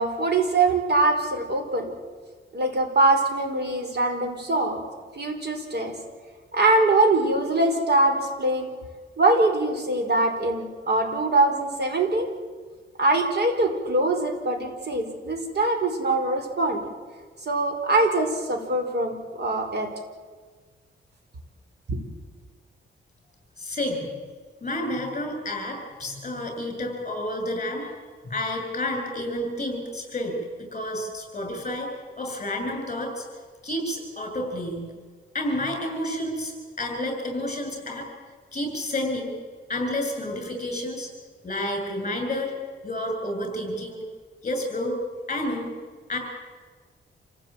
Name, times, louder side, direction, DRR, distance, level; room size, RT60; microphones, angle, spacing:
voice 1, 0.0-1.9 2.5-4.8 5.1-5.9 6.5-8.7 9.2-12.3 13.0-16.8 17.4-19.9 21.9-22.0, right 2 dB, 50° right, 3 dB, 5.0 m, -23 dB
voice 2, 23.6-24.1 24.6-27.9 28.2-31.9 32.2-33.2 33.6-34.9 35.3-38.1 38.5-39.3 39.7-41.1 41.4-42.5 42.8-44.0 44.4-45.0 45.3-45.7 46.1-46.2, left 1 dB, 35° left, 4 dB, 7.4 m, -30 dB
28.0 x 16.5 x 9.0 m, 1.5 s
wide cardioid pair, 120°, 21 cm